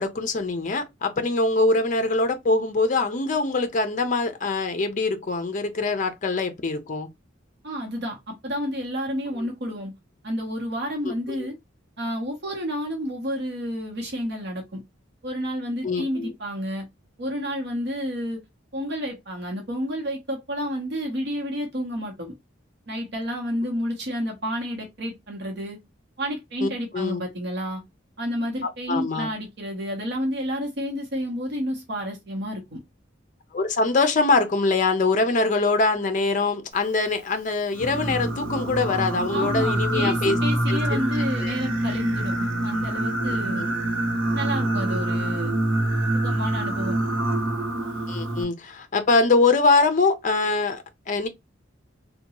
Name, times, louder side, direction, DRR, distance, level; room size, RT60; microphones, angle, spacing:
voice 1, 0.0-7.1 11.0-11.5 15.8-16.3 26.6-27.2 28.6-29.3 33.5-40.4 40.7-40.8 41.4-41.6 43.6-43.7 48.1-51.3, left 3 dB, 40° left, 0.5 m, -23 dB
voice 2, 7.6-9.9 10.2-11.6 12.0-14.8 15.2-16.9 17.2-18.4 18.7-22.3 22.9-25.8 26.2-27.8 28.2-32.8 39.3-43.7 44.3-45.6 46.1-47.0, equal, 60° right, 0.9 m, -30 dB
Singing, 37.7-48.4, right 1 dB, 85° right, 0.8 m, -26 dB
2.8 x 2.2 x 2.8 m
head